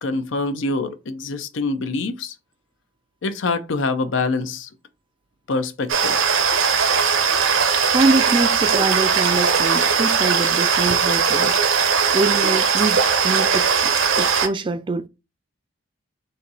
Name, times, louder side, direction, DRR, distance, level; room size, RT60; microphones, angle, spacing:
voice 1, 0.0-2.3 3.2-4.7 5.5-6.2, left 3 dB, 70° left, 0.6 m, -25 dB
sound 1, 5.9-14.5, right 6 dB, 80° right, 0.7 m, -19 dB
voice 2, 7.9-11.7 12.1-15.1, right 3 dB, 25° right, 0.3 m, -24 dB
4.2 x 2.7 x 4.0 m
head